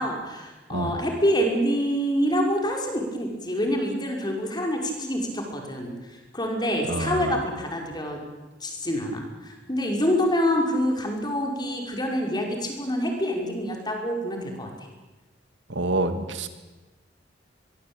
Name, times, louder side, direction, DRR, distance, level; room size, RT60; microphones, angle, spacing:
voice 1, 0.0-8.2 8.6-14.7, equal, 25° left, 2 dB, 5.6 m, -26 dB
voice 2, 6.9-7.4 15.7-16.5, right 2 dB, 90° right, 8 dB, 2.5 m, -27 dB
24.0 x 21.0 x 9.0 m, 1.2 s
head